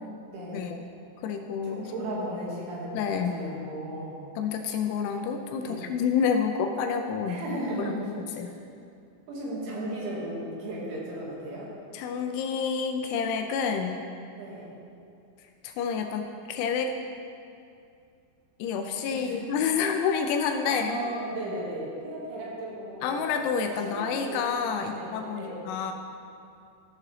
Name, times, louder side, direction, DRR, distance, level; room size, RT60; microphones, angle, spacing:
voice 1, 0.3-0.6 1.6-4.2 5.5-5.9 7.3-8.6 9.3-11.7 14.4-14.8 19.1-19.5 20.6-23.3 23.8-24.6 24.9-25.6, right 1 dB, 80° right, -5 dB, 4.2 m, -36 dB
voice 2, 1.2-1.8 2.9-3.3 4.4-7.4 7.8-7.9 8.4-8.5 11.9-14.0 15.6-17.0 18.6-21.0 23.0-25.9, left 6 dB, 85° left, 5 dB, 2.8 m, -28 dB
14.5 x 6.7 x 3.2 m, 2.5 s
omnidirectional pair, 5.3 m